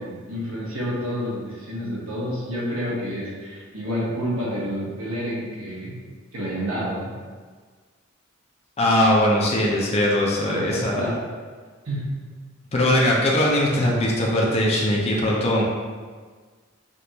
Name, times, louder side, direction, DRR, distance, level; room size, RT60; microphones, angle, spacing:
voice 1, 0.0-6.0 6.3-7.1 10.5-11.2 11.9-12.1, equal, 80° right, -6 dB, 1.2 m, -29 dB
voice 2, 8.8-11.1 12.7-15.6, left 1 dB, 30° left, -3 dB, 0.6 m, -20 dB
5.1 x 2.6 x 2.9 m, 1.5 s
head